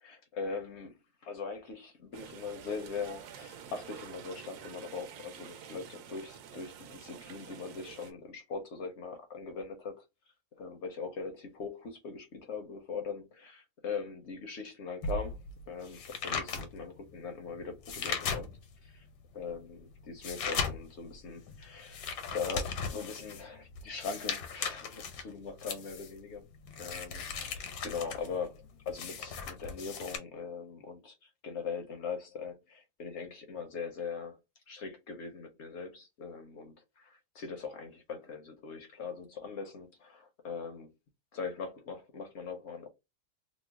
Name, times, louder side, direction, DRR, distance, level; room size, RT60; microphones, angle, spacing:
voice 1, 0.0-10.0 10.6-15.4 15.7-18.5 18.8-19.1 19.3-22.0 22.3-26.5 26.8-34.4 34.7-40.9 41.3-42.9, left 5 dB, 65° left, 0.7 m, -41 dB
sound 1, 2.1-8.1, right 8 dB, 75° right, 1.1 m, -49 dB
sound 2, 15.0-18.9 19.3-30.2, left 5 dB, 85° left, 1.3 m, -38 dB
3.0 x 2.0 x 3.4 m
omnidirectional pair, 1.7 m